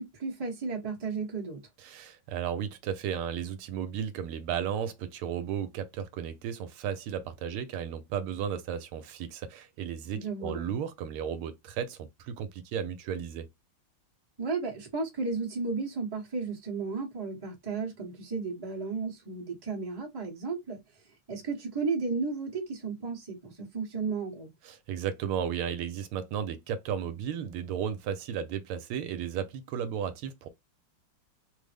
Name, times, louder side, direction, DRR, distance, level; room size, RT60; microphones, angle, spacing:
voice 1, 0.0-1.6 10.1-10.7 14.4-20.8 21.3-24.5, right 4 dB, 15° right, 0.8 m, -34 dB
voice 2, 1.8-13.5 24.6-30.5, right 8 dB, 80° right, 1.5 m, -34 dB
3.7 x 2.0 x 3.3 m
omnidirectional pair, 2.4 m